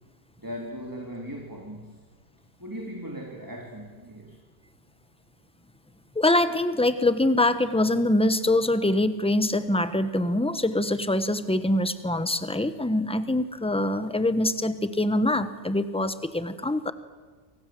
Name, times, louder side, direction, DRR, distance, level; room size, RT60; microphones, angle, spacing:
voice 1, 0.4-2.0 2.6-4.4, equal, 15° right, 1 dB, 3.3 m, -38 dB
voice 2, 6.1-16.9, left 1 dB, 5° left, 11 dB, 1.2 m, -24 dB
29.0 x 26.0 x 7.8 m, 1.4 s
omnidirectional pair, 1.2 m